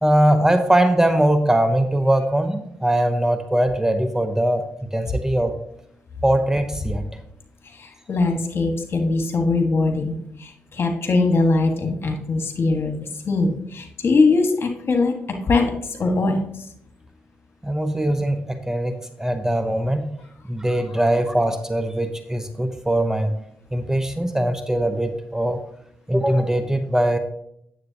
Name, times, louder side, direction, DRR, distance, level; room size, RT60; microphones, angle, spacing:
voice 1, 0.0-5.6 6.2-7.1 17.6-20.1 20.5-23.3 23.7-25.6 26.1-27.2, right 1 dB, 10° right, 8 dB, 0.9 m, -21 dB
voice 2, 8.1-10.2 10.4-13.0 13.3-15.1 15.4-15.7 16.0-16.4, left 3 dB, 50° left, 3 dB, 1.8 m, -21 dB
9.3 x 7.7 x 2.9 m, 0.73 s
supercardioid pair, 50°, 5 cm